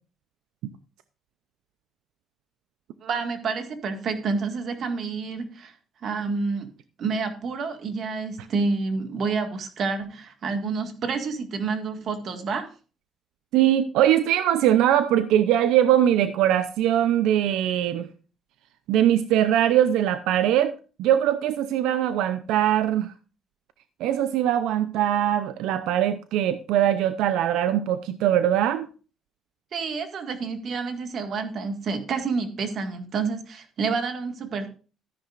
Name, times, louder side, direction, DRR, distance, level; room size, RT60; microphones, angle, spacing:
voice 1, 3.0-5.7 6.0-6.7 7.0-12.7 29.7-34.7, right 4 dB, 50° right, 6 dB, 1.8 m, -29 dB
voice 2, 13.5-18.1 18.9-20.7 21.0-23.1 24.0-28.9, right 11 dB, 90° right, 11 dB, 0.5 m, -21 dB
13.5 x 10.0 x 2.5 m, 0.36 s
cardioid pair, 130°, 0 cm